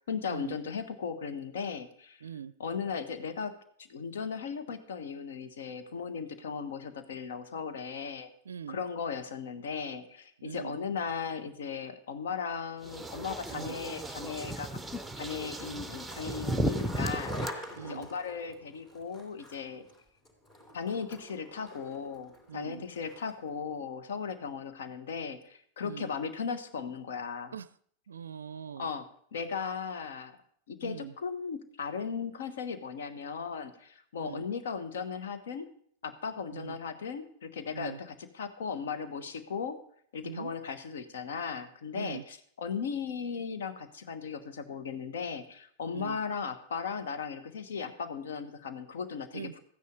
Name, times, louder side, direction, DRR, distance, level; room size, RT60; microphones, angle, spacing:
voice 1, 0.1-2.2 2.6-3.6 3.9-8.3 8.7-14.8 15.2-19.9 20.7-27.5 28.8-29.1 29.3-30.3 30.7-35.7 36.0-39.8 40.1-49.6, left 6 dB, 60° left, 10 dB, 1.2 m, -37 dB
voice 2, 2.2-2.5 8.5-8.8 10.4-10.8 13.5-13.8 17.7-18.1 22.5-22.8 25.8-26.1 27.5-27.7 28.1-28.9 30.8-31.1 34.2-34.4 36.5-36.8 37.7-38.0 40.2-40.5 41.9-42.2 45.9-46.2 49.3-49.5, right 8 dB, 70° right, 17 dB, 0.4 m, -42 dB
sound 1, 12.8-17.5, right 1 dB, 5° right, 0.8 m, -35 dB
Skateboard, 15.2-23.5, left 1 dB, 30° left, 3.3 m, -47 dB
14.5 x 9.5 x 5.2 m, 0.63 s
figure-of-eight pair, 90°, 0 cm